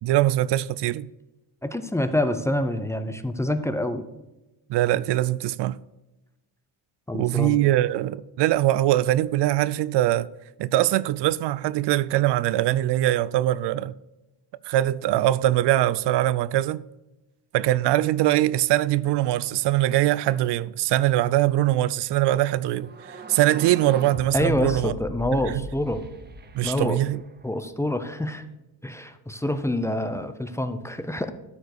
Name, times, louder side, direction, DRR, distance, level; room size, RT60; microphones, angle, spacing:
voice 1, 0.0-1.1 4.7-5.8 7.1-10.3 10.6-13.9 14.6-16.8 17.5-24.9 25.3-25.4 26.5-27.2, right 14 dB, 75° right, 0.5 m, -22 dB
voice 2, 1.6-4.0 7.1-7.6 24.3-26.0 26.6-27.0 27.4-28.4 28.8-31.3, left 1 dB, 5° left, 0.6 m, -26 dB
sound 1, 22.8-27.6, right 2 dB, 25° right, 0.8 m, -40 dB
13.0 x 4.8 x 6.5 m
cardioid pair, 140°, 42 cm